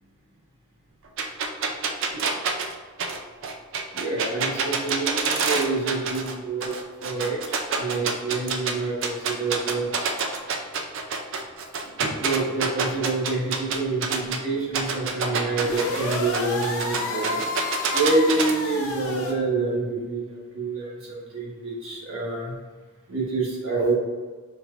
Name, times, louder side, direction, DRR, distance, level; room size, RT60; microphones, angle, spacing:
sound 1, 1.2-6.3 6.6-8.7 9.0-14.4 14.7-18.5, right 5 dB, 60° right, 0.5 m, -26 dB
voice 1, 3.9-6.7 7.0-9.9 12.0-17.4 17.9-21.0 21.3-22.5 23.1-23.9, right 3 dB, 80° right, -4 dB, 1.3 m, -27 dB
sound 2, 15.6-19.3, left 2 dB, 70° left, 0.8 m, -30 dB
5.4 x 3.1 x 2.5 m, 1.4 s
head